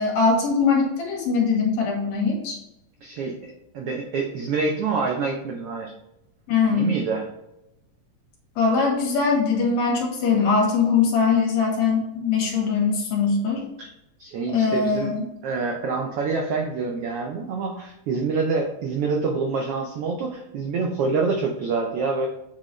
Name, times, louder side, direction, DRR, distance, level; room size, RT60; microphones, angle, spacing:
voice 1, 0.0-2.6 6.5-6.9 8.6-13.6 14.5-15.3, left 5 dB, 65° left, 0 dB, 2.4 m, -21 dB
voice 2, 3.0-5.9 6.7-7.3 13.8-13.9 14.2-22.3, right 4 dB, 90° right, 1 dB, 1.2 m, -26 dB
7.7 x 3.8 x 3.1 m, 0.86 s
omnidirectional pair, 3.5 m